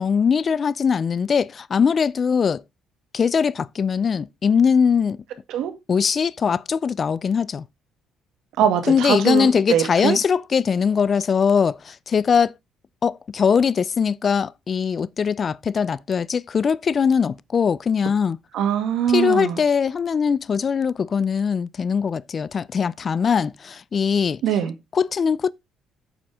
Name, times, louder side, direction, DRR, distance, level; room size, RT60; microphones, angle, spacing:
voice 1, 0.0-2.6 3.1-5.2 5.9-7.7 8.9-12.5 13.0-18.4 19.1-24.4 24.9-25.5, left 6 dB, 35° left, 0.4 m, -21 dB
voice 2, 8.6-10.2 18.5-19.6 24.4-24.7, right 9 dB, 80° right, 2.0 m, -22 dB
8.9 x 7.5 x 3.5 m
cardioid pair, 140°, 0 cm